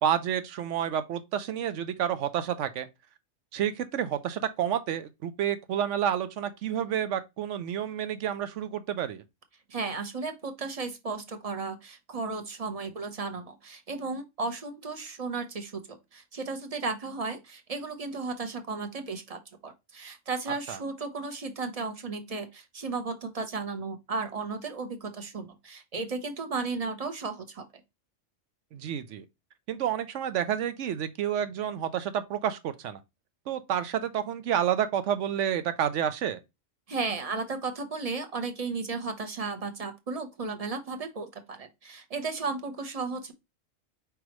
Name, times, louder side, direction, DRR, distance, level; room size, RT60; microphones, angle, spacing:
voice 1, 0.0-2.9 3.5-9.2 20.7-20.8 28.7-29.2 29.7-33.0 33.5-36.4, right 9 dB, 70° right, 1.0 m, -29 dB
voice 2, 9.7-27.6 36.9-43.3, right 4 dB, 35° right, 0.7 m, -34 dB
4.9 x 3.5 x 3.0 m
omnidirectional pair, 1.3 m